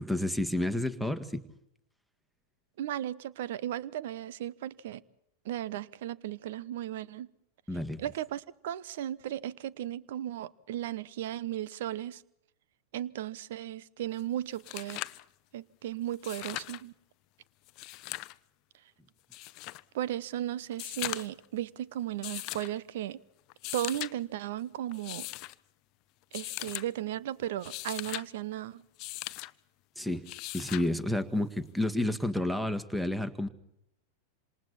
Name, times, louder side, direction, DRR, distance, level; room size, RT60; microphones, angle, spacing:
voice 1, 0.0-1.4 7.7-8.0 30.0-30.3 30.5-33.5, left 1 dB, ahead, 12 dB, 1.8 m, -30 dB
voice 2, 2.8-5.0 5.4-7.3 8.0-12.2 12.9-15.1 15.5-16.9 19.9-23.2 23.7-25.3 26.3-28.8, right 12 dB, 55° right, 21 dB, 0.9 m, -36 dB
sound 1, 14.2-14.3 14.5-15.2 16.1-16.8 17.7-18.4 19.3-19.8 20.7-21.4 22.2-22.7 23.5-24.1 24.9-25.5 26.3-26.9 27.5-28.3 29.0-29.5 30.3-30.9 32.3-32.4, left 20 dB, 40° left, 0.7 m, -39 dB
27.5 x 27.0 x 4.3 m, 0.78 s
figure-of-eight pair, 90°, 0 cm